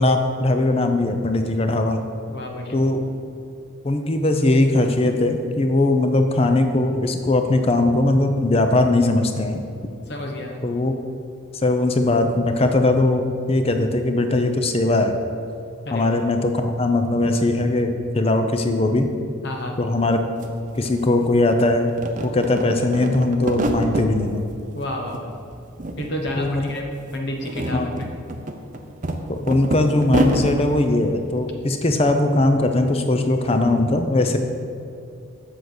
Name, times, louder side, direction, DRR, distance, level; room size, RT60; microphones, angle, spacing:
voice 1, 0.0-2.0 2.7-3.0 3.8-9.6 10.6-10.9 11.5-15.2 15.9-19.1 19.8-20.2 20.8-21.9 22.2-24.4 26.4-26.7 27.7-28.0 29.3-34.4, left 2 dB, 25° left, 6 dB, 0.6 m, -20 dB
voice 2, 2.3-2.8 10.1-10.6 15.8-16.1 19.4-19.8 24.7-25.3 26.0-26.8 27.1-27.9, left 1 dB, 50° left, 1 dB, 0.9 m, -30 dB
sound 1, 20.1-20.2 20.4-21.6 21.9-24.1 24.5-25.2 25.5-26.4 26.6-26.8 27.3-30.6, right 1 dB, 35° right, 0.6 m, -26 dB
7.6 x 6.5 x 6.1 m, 2.6 s
head